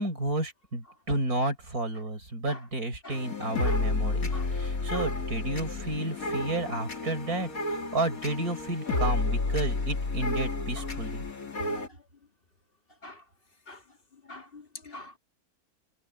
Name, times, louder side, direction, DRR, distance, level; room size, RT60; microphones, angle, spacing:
voice 1, 0.0-11.2, right 2 dB, 80° right, 5.3 m, -32 dB
sound 1, 3.1-11.9, left 2 dB, 70° left, 2.8 m, -31 dB
voice 2, 14.3-15.2, left 2 dB, 40° left, 2.4 m, -44 dB
omnidirectional pair, 1.5 m